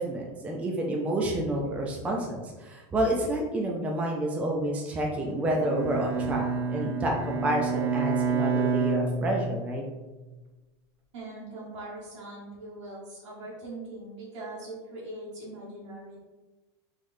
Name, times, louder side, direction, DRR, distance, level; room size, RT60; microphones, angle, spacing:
voice 1, 0.0-9.8, right 1 dB, 10° right, -1 dB, 0.3 m, -29 dB
Bowed string instrument, 5.5-9.8, right 5 dB, 65° right, 0.6 m, -29 dB
voice 2, 11.1-16.2, right 2 dB, 85° right, -7 dB, 1.3 m, -41 dB
3.8 x 3.1 x 2.6 m, 1.2 s
supercardioid pair, 145°, 15 cm